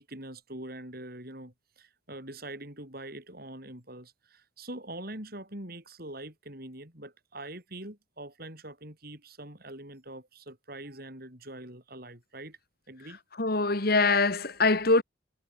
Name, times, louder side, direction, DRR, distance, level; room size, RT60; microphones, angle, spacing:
voice 1, 0.0-12.6 12.9-13.2, right 1 dB, 50° right, 7.8 m, -43 dB
voice 2, 13.4-15.0, left 3 dB, 50° left, 1.9 m, -23 dB
head